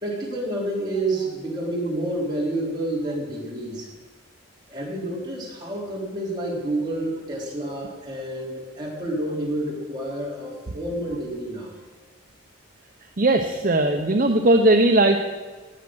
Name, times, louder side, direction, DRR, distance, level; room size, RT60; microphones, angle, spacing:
voice 1, 0.0-3.9 4.7-11.7, right 1 dB, 20° right, -4 dB, 3.7 m, -29 dB
voice 2, 13.2-15.2, right 2 dB, 40° right, 4 dB, 0.8 m, -18 dB
18.0 x 8.7 x 6.3 m, 1.4 s
head